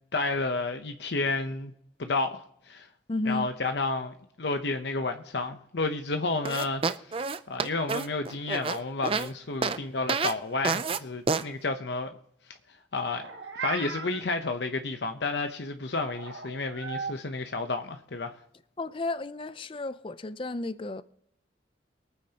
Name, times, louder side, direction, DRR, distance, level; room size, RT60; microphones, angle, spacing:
voice 1, 0.1-1.7 2.0-2.9 3.2-7.2 7.5-12.2 12.9-13.3 13.6-18.4, left 3 dB, 65° left, 0.8 m, -31 dB
voice 2, 3.1-3.5 18.8-21.0, left 2 dB, 30° left, 0.5 m, -32 dB
sound 1, 6.4-9.3 9.6-9.8 10.1-10.3 10.6-11.0 11.3-11.4, right 4 dB, 30° right, 0.5 m, -28 dB
Meow, 13.0-14.2 16.1-17.1, right 5 dB, 70° right, 1.6 m, -37 dB
23.5 x 9.2 x 2.9 m
head